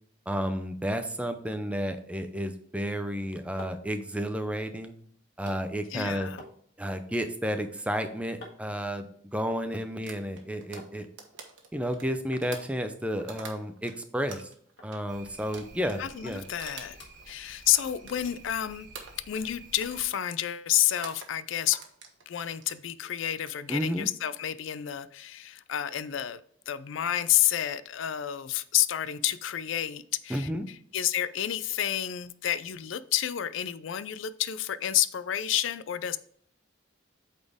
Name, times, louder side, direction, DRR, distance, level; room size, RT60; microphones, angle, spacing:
voice 1, 0.3-4.9 5.4-6.3 6.8-9.1 9.3-11.1 11.7-14.5 14.8-16.4 23.7-24.1 30.3-30.7, equal, 5° right, 0.5 m, -31 dB
sound 1, 3.3-11.0 11.3-11.9 12.3-12.5 12.8-12.9 13.2-14.5 14.8-14.9 15.5-15.7 16.0-16.7 16.9-17.9 18.2-18.5 19.0-19.1, left 1 dB, 60° left, 1.6 m, -53 dB
voice 2, 5.9-6.4 16.0-17.0 17.3-18.9 19.3-21.8 22.3-26.4 26.7-36.2, left 12 dB, 75° left, 0.4 m, -29 dB
sound 2, 10.1-13.9 14.3-18.6 18.9-19.5 19.8-20.1 20.8-21.3 21.7-22.8 23.3-23.8, right 5 dB, 75° right, 1.3 m, -46 dB
sound 3, 15.1-20.0, right 3 dB, 45° right, 1.6 m, -52 dB
8.4 x 4.2 x 3.5 m
head